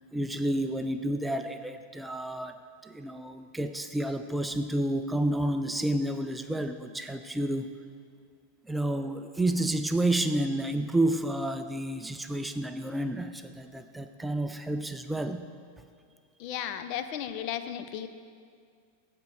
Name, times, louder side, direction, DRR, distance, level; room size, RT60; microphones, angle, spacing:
voice 1, 0.1-7.7 8.7-15.5, right 1 dB, 5° right, 8 dB, 0.4 m, -30 dB
voice 2, 16.4-18.1, left 10 dB, 45° left, 10 dB, 0.5 m, -34 dB
14.5 x 5.2 x 4.8 m, 2.2 s
figure-of-eight pair, 90°, 0 cm